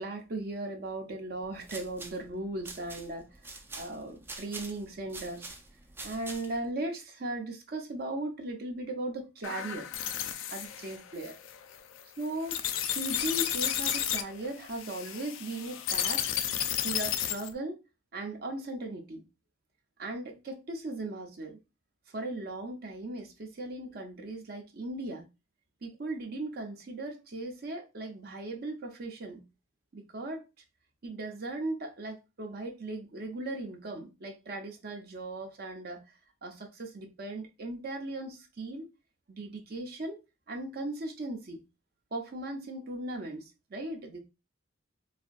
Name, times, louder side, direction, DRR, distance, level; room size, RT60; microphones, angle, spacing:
voice 1, 0.0-5.5 6.0-9.9 10.5-11.4 12.2-12.7 12.9-16.3 16.8-17.8 18.1-19.2 20.0-21.6 22.1-25.3 25.8-29.4 29.9-30.4 31.0-38.9 39.3-40.2 40.5-41.6 42.1-44.2, right 2 dB, 50° right, 0.6 m, -38 dB
sound 1, 1.4-6.7, right 3 dB, 10° right, 0.3 m, -46 dB
sound 2, 9.4-17.5, left 10 dB, 80° left, 0.4 m, -33 dB
4.1 x 2.6 x 2.3 m
head